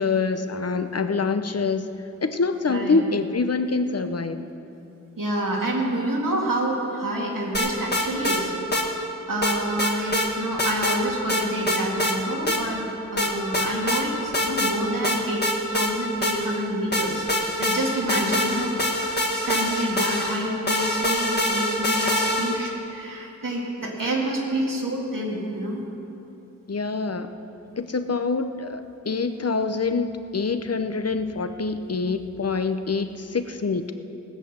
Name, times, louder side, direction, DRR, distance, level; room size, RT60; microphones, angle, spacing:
voice 1, 0.0-1.9 2.2-4.4 9.6-9.8 18.2-18.8 26.7-27.3 27.8-28.8 29.1-33.9, left 4 dB, 50° left, 9 dB, 0.8 m, -25 dB
voice 2, 2.7-3.0 5.2-8.5 9.3-17.3 17.6-25.8, right 1 dB, 85° right, -2 dB, 2.3 m, -28 dB
sound 1, 7.5-8.4 8.7-8.9 9.4-10.3 10.6-11.0 11.3-12.2 12.5-12.6 13.2-14.0 14.3-14.7 15.0-16.6 16.9-22.7, left 1 dB, 30° left, 1.8 m, -24 dB
18.0 x 8.0 x 6.7 m, 2.9 s
wide cardioid pair, 55°, 32 cm